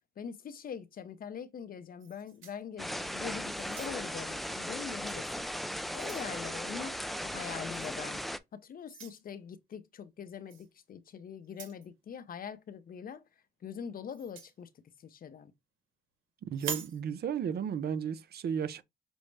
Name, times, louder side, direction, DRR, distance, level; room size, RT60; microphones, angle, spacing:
voice 1, 0.2-5.5 5.9-8.2 8.5-13.2 13.6-14.7 15.0-15.5, left 7 dB, 45° left, 0.6 m, -43 dB
sound 1, 2.0-3.1 3.6-4.2 5.0-5.2 5.6-6.3 7.7-8.0 8.9-9.2 10.5-10.7 11.4-11.9 14.1-14.5 16.5-17.0, right 7 dB, 80° right, 1.2 m, -43 dB
sound 2, 2.8-8.4, equal, ahead, 0.3 m, -37 dB
voice 2, 16.4-18.8, right 8 dB, 55° right, 0.6 m, -34 dB
6.1 x 2.0 x 3.2 m
cardioid pair, 90°, 20 cm